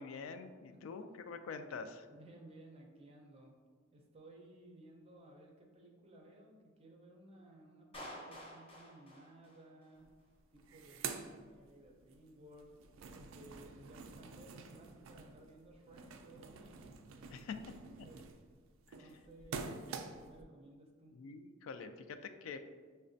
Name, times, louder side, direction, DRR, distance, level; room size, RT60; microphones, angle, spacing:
voice 1, 0.0-2.1 17.3-17.6 21.1-22.6, left 5 dB, 80° left, 8 dB, 0.3 m, -46 dB
voice 2, 2.1-3.6 3.9-10.1 10.5-12.7 13.1-16.8 17.4-18.3 18.9-21.2, right 1 dB, 30° right, 0 dB, 0.6 m, -58 dB
Clapping, 7.9-10.0, equal, 30° left, 0.7 m, -50 dB
sound 1, 10.0-10.1 10.4-12.2 12.5-20.4, right 5 dB, 75° right, 0.3 m, -48 dB
5.6 x 2.2 x 2.6 m, 1.5 s
head